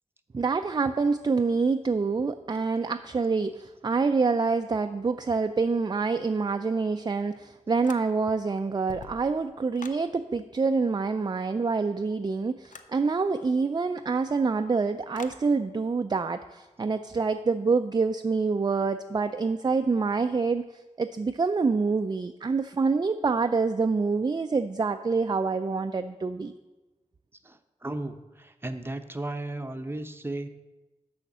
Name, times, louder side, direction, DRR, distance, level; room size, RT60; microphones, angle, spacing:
voice 1, 0.3-20.6 21.0-26.5, right 4 dB, 35° right, 8 dB, 0.4 m, -26 dB
sound 1, 7.8-8.4 8.7-10.1 12.6-13.0 15.1-15.5, left 5 dB, 85° left, 0.5 m, -45 dB
voice 2, 27.4-30.5, right 2 dB, 20° right, 7 dB, 0.7 m, -35 dB
6.7 x 5.7 x 7.3 m, 1.1 s
cardioid pair, 50°, 13 cm